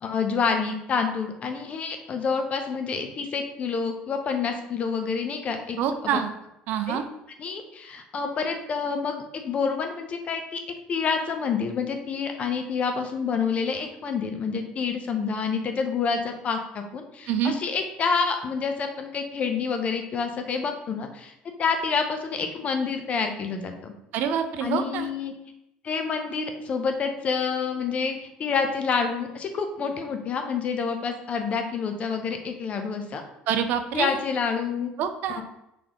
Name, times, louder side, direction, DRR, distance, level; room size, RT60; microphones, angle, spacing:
voice 1, 0.0-5.8 6.0-6.2 6.9-7.0 7.4-10.6 10.9-21.3 21.6-23.9 24.6-25.3 25.8-33.2 33.9-34.9 35.3-35.4, left 5 dB, 40° left, 5 dB, 0.6 m, -28 dB
voice 2, 5.8-6.3 6.7-7.1 17.3-17.6 24.1-25.1 33.5-34.2 35.0-35.4, right 8 dB, 65° right, 8 dB, 0.4 m, -26 dB
3.8 x 3.4 x 2.9 m, 0.83 s
supercardioid pair, 110°, 3 cm